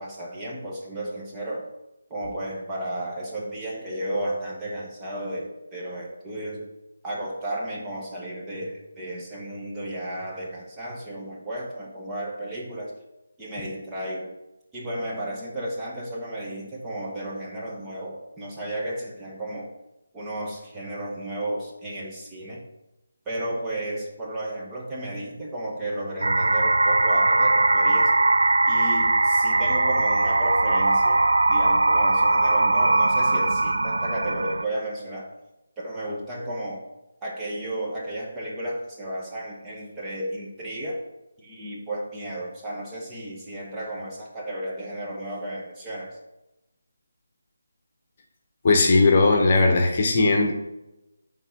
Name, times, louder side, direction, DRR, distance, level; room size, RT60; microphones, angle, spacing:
voice 1, 0.0-1.7 2.1-6.7 7.0-12.9 13.4-14.3 14.7-19.7 20.1-22.6 23.3-28.1 28.7-35.3 35.8-36.8 37.2-41.0 41.4-46.2, right 1 dB, 15° right, -4 dB, 1.3 m, -33 dB
sound 1, 26.2-34.6, right 2 dB, 75° right, 0.4 m, -20 dB
voice 2, 48.6-50.5, left 3 dB, 40° left, 3 dB, 1.2 m, -18 dB
10.5 x 3.8 x 3.9 m, 0.95 s
figure-of-eight pair, 155°, 0 cm